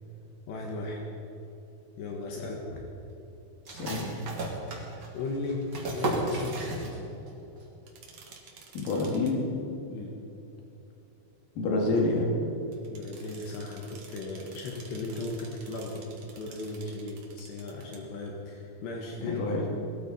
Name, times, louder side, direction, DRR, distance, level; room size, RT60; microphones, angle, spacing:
voice 1, 0.5-1.0 2.0-2.8 5.1-7.1 9.9-10.2 12.9-19.6, left 2 dB, 75° left, 0 dB, 3.6 m, -36 dB
sound 1, 3.6-7.3 7.6-7.7 8.1-8.6, right 2 dB, 35° right, 2.0 m, -34 dB
voice 2, 3.7-4.2 8.7-9.5 11.6-12.3 19.2-19.7, left 2 dB, 55° left, -1 dB, 3.6 m, -28 dB
sound 2, 7.9-9.3 12.7-18.0, right 5 dB, 55° right, 1.9 m, -51 dB
20.5 x 13.5 x 4.3 m, 2.9 s
omnidirectional pair, 5.0 m